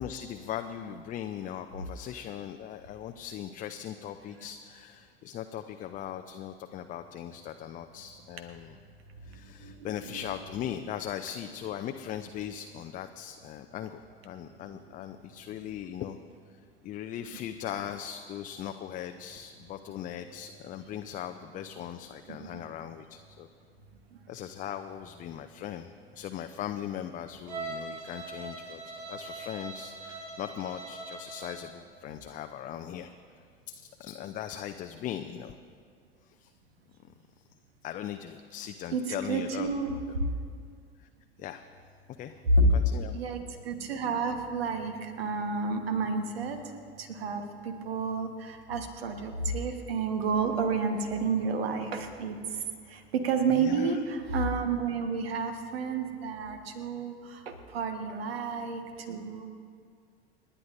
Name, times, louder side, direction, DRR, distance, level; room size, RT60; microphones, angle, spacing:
voice 1, 0.0-8.8 9.2-16.2 16.8-23.5 24.3-33.1 33.7-35.6 36.2-36.5 37.0-37.1 37.8-39.7 41.0-41.1 41.4-41.6 42.2-42.4 42.7-43.2 53.5-54.0, left 10 dB, 25° left, 7 dB, 0.5 m, -39 dB
voice 2, 9.6-10.1 22.3-22.5 38.9-39.0 39.3-40.0 42.4-42.7 43.1-46.6 47.0-52.4 52.9-59.5, right 4 dB, 65° right, 7 dB, 1.4 m, -30 dB
Bowed string instrument, 27.5-31.7, right 3 dB, 50° right, 2.3 m, -41 dB
28.5 x 11.0 x 2.6 m, 2.2 s
figure-of-eight pair, 75°, 32 cm